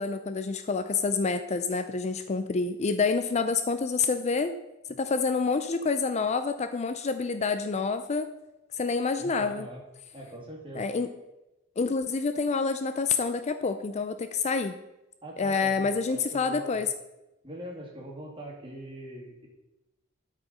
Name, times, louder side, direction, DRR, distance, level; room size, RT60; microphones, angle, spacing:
voice 1, 0.0-4.5 4.9-8.3 8.7-9.7 10.7-11.1 11.8-14.7 15.4-16.9, left 4 dB, 35° left, 10 dB, 0.4 m, -28 dB
voice 2, 9.2-9.8 10.1-10.9 15.2-16.8 17.4-19.5, right 1 dB, 25° right, -2 dB, 2.6 m, -42 dB
12.0 x 5.0 x 5.4 m, 0.98 s
head